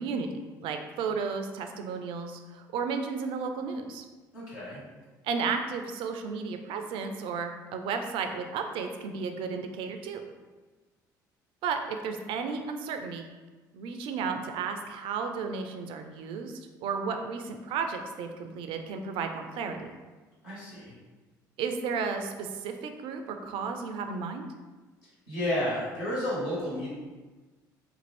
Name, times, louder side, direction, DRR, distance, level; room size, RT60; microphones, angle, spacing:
voice 1, 0.0-4.0 5.2-10.2 11.6-13.2 13.7-19.9 21.6-24.5, right 5 dB, 60° right, 6 dB, 0.4 m, -33 dB
voice 2, 4.3-4.8 20.4-20.9 25.3-26.9, left 1 dB, 80° left, -9 dB, 1.4 m, -31 dB
2.6 x 2.4 x 3.2 m, 1.3 s
hypercardioid pair, 55°, 10 cm